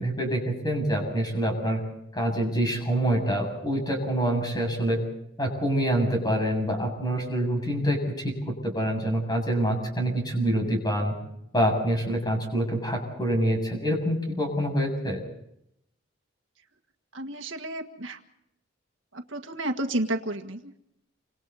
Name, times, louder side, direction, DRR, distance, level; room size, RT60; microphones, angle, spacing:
voice 1, 0.0-1.8 2.1-5.0 5.4-8.0 8.2-8.3 8.6-11.1 11.5-15.2, right 1 dB, 20° left, 2 dB, 7.6 m, -26 dB
voice 2, 17.1-18.2 19.1-20.8, right 1 dB, 70° right, 5 dB, 1.8 m, -31 dB
29.0 x 26.5 x 4.2 m, 0.77 s
head